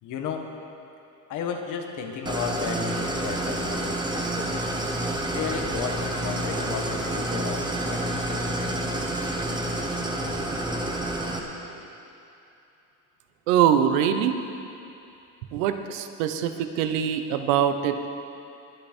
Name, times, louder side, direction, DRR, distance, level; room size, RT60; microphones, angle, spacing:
voice 1, 0.0-0.5 1.3-4.7 5.2-9.0, left 6 dB, 55° left, 4 dB, 1.5 m, -34 dB
Idling, 2.3-11.4, right 1 dB, 10° right, 1.2 m, -29 dB
voice 2, 13.5-14.4 15.5-18.1, right 9 dB, 90° right, 8 dB, 1.0 m, -23 dB
21.5 x 9.1 x 4.5 m, 2.7 s
cardioid pair, 130°, 37 cm